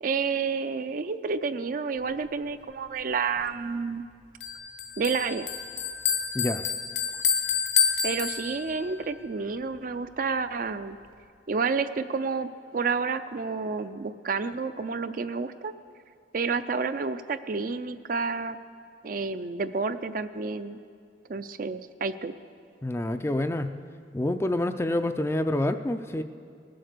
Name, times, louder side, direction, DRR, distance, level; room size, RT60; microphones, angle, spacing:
voice 1, 0.0-4.0 5.0-5.5 8.0-11.0 11.5-15.7 16.3-18.6 19.0-20.8 21.3-22.3, right 5 dB, 50° right, 11 dB, 0.4 m, -30 dB
Bell, 4.4-8.9, left 7 dB, 65° left, 1.0 m, -28 dB
voice 2, 6.3-6.7 22.8-23.7 24.1-26.2, left 1 dB, 15° left, 9 dB, 0.4 m, -27 dB
19.5 x 7.8 x 6.6 m, 2.3 s
head